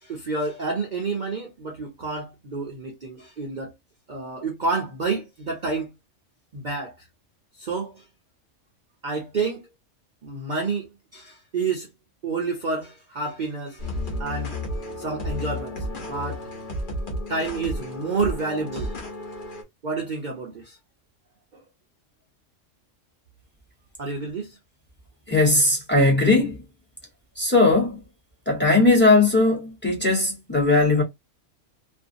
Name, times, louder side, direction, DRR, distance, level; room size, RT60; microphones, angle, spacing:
voice 1, 0.0-3.7 4.1-5.9 6.5-7.0 7.6-8.0 9.0-9.7 10.2-10.9 11.1-11.9 12.2-14.6 15.0-16.5 17.3-19.0 19.8-20.8 21.5-21.6 24.0-24.6, right 4 dB, 50° right, 0.7 m, -29 dB
sound 1, 13.8-19.6, left 1 dB, 45° left, 1.0 m, -32 dB
voice 2, 25.3-26.6 27.4-28.0 28.5-31.0, left 2 dB, 10° left, 1.0 m, -19 dB
2.5 x 2.4 x 2.6 m
omnidirectional pair, 1.3 m